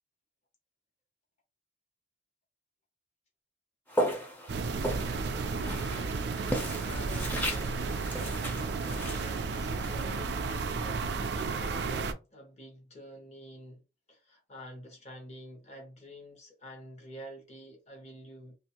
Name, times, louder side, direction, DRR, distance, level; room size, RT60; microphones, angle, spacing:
Walk footsteps, 3.9-11.0, equal, 10° left, 0.6 m, -36 dB
sound 1, 4.5-12.1, right 4 dB, 55° right, 0.3 m, -33 dB
voice 1, 6.4-13.8 14.1-18.6, equal, 35° left, 0.9 m, -48 dB
2.5 x 2.4 x 2.9 m
head